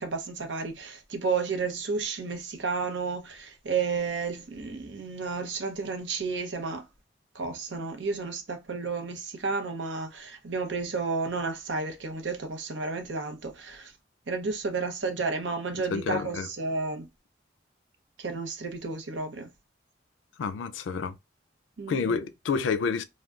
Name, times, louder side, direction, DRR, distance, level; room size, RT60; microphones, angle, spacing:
voice 1, 0.0-6.9 7.3-13.9 14.3-17.1 18.2-19.5 21.8-22.2, right 4 dB, 80° right, 0.7 m, -32 dB
voice 2, 15.9-16.5 20.4-21.2 21.9-23.0, left 5 dB, 85° left, 0.4 m, -29 dB
3.4 x 2.2 x 2.4 m
head